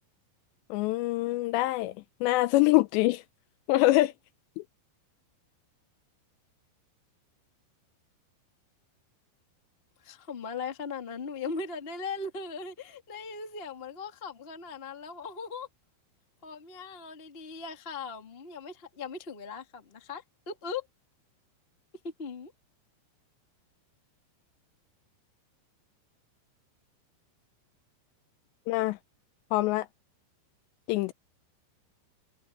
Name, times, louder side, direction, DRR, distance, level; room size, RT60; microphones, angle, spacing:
voice 1, 0.7-1.9 2.2-3.2 3.7-4.1 4.6-4.7 28.7-29.0 29.5-29.9 30.9-31.1, left 18 dB, 85° left, 2.7 m, -24 dB
voice 2, 10.0-15.7 16.4-20.9 22.0-22.5, left 4 dB, 35° left, 0.8 m, -39 dB
omnidirectional pair, 5.3 m